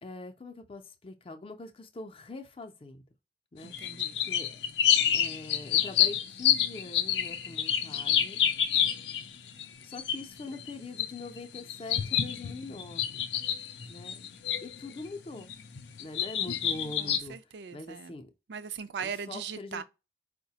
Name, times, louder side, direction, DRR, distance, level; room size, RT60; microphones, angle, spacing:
voice 1, 0.0-3.0 3.5-4.5 5.1-8.4 9.8-13.3 13.9-14.3 14.6-15.5 16.0-17.4 17.7-18.3 19.0-19.8, left 2 dB, 30° left, 0.5 m, -43 dB
sound 1, 3.6-9.6 9.9-15.1 15.4-17.2, left 9 dB, 80° left, 0.5 m, -28 dB
voice 2, 3.6-4.2 17.0-18.1 18.5-19.8, right 6 dB, 80° right, 0.4 m, -39 dB
4.6 x 2.1 x 2.8 m
head